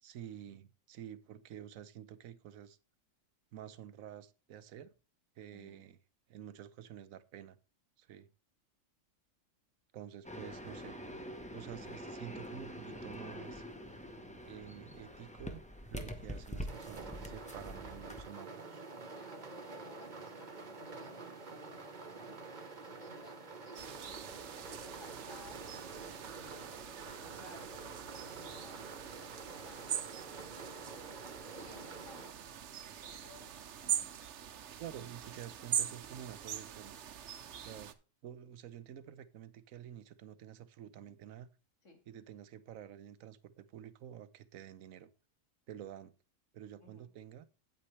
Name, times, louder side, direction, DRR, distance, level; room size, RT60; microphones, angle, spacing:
voice 1, 0.0-2.8 3.5-4.9 5.4-6.0 6.3-7.6 8.0-8.3 9.9-11.0 11.4-13.6 14.4-15.6 15.9-18.8 34.8-36.9 37.6-37.9 38.2-41.5 42.1-45.1 45.7-46.1 46.5-47.4, right 10 dB, 85° right, 1.1 m, -49 dB
voice 2, 5.5-5.9 19.1-24.2 24.6-25.6 26.2-27.9 28.2-28.9 29.4-29.9 31.5-32.6 33.0-34.1 41.8-42.0 46.8-47.1, left 3 dB, 65° left, 2.5 m, -58 dB
sound 1, 10.2-18.2, equal, 5° left, 0.9 m, -45 dB
sound 2, 16.7-32.3, right 3 dB, 35° right, 1.2 m, -48 dB
sound 3, 23.7-37.9, right 9 dB, 65° right, 1.0 m, -42 dB
9.1 x 8.7 x 3.2 m
omnidirectional pair, 1.4 m